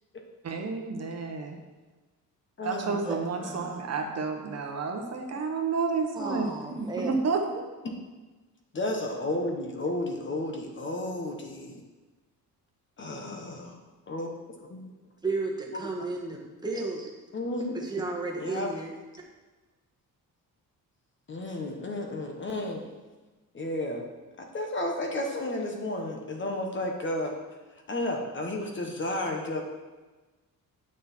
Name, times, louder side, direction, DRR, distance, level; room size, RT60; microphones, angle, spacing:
voice 1, 0.4-1.6 2.6-7.7, right 4 dB, 45° right, 3 dB, 1.1 m, -30 dB
voice 2, 2.6-3.8 8.7-11.8 13.0-13.8 14.1-14.8 15.7-15.9 17.3-18.0 18.4-18.7 21.3-22.8 23.5-24.0 24.4-27.4 27.9-29.6, left 1 dB, 35° left, 2 dB, 1.2 m, -33 dB
voice 3, 6.1-7.2 15.2-17.1 17.7-18.9, right 3 dB, 10° right, 0 dB, 1.3 m, -33 dB
9.0 x 6.4 x 4.4 m, 1.2 s
cardioid pair, 145°, 35 cm